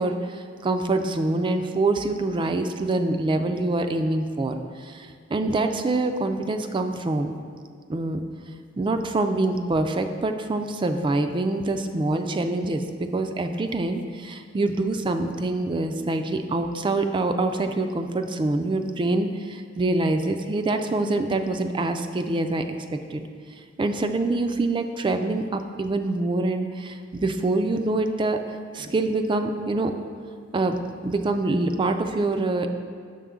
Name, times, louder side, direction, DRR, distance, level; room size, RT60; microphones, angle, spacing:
voice 1, 0.0-7.3 7.9-8.2 8.8-12.8 13.1-22.6 23.1-23.2 23.8-29.9 30.5-32.7, right 2 dB, 25° right, 6 dB, 0.3 m, -25 dB
6.9 x 6.1 x 3.7 m, 2.1 s
head